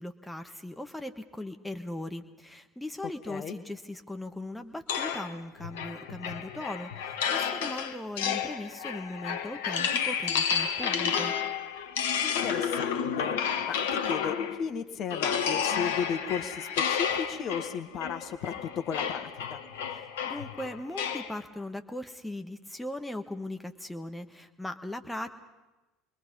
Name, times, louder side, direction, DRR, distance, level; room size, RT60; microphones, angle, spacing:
voice 1, 0.0-11.3 19.9-25.3, left 1 dB, 5° left, 6 dB, 1.4 m, -39 dB
sound 1, 4.9-14.7 15.1-21.3, left 7 dB, 65° left, 1.2 m, -31 dB
voice 2, 12.2-13.4 13.7-13.8 14.1-19.6, left 7 dB, 45° left, 9 dB, 1.8 m, -35 dB
27.5 x 22.5 x 5.4 m, 1.1 s
figure-of-eight pair, 65°, 0 cm